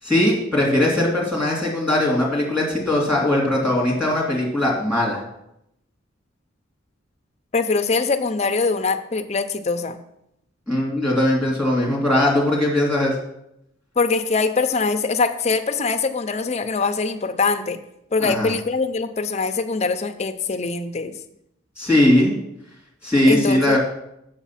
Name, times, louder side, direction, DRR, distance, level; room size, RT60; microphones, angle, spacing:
voice 1, 0.0-5.2 10.7-13.1 18.2-18.5 21.8-22.4 23.0-23.8, left 1 dB, 5° right, -3 dB, 2.5 m, -19 dB
voice 2, 7.5-10.0 14.0-17.8 18.1-21.1 23.3-23.8, left 4 dB, 35° left, 7 dB, 0.6 m, -23 dB
7.2 x 6.7 x 5.7 m, 0.80 s
head